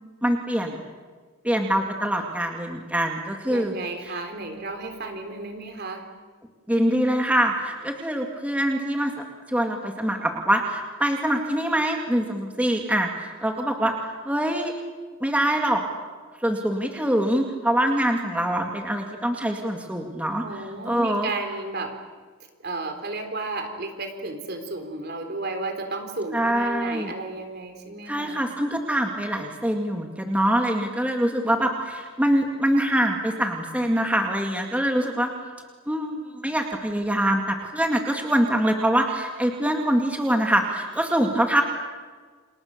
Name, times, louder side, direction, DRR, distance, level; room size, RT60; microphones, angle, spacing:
voice 1, 0.2-0.8 1.4-3.8 6.7-9.1 9.5-14.7 15.2-15.8 16.4-21.3 26.3-27.1 28.1-35.3 35.9-41.6, right 1 dB, 5° right, 2 dB, 2.2 m, -24 dB
voice 2, 3.5-6.1 20.4-21.9 22.6-28.4, right 2 dB, 50° right, 6 dB, 3.9 m, -33 dB
30.0 x 27.5 x 6.8 m, 1.5 s
head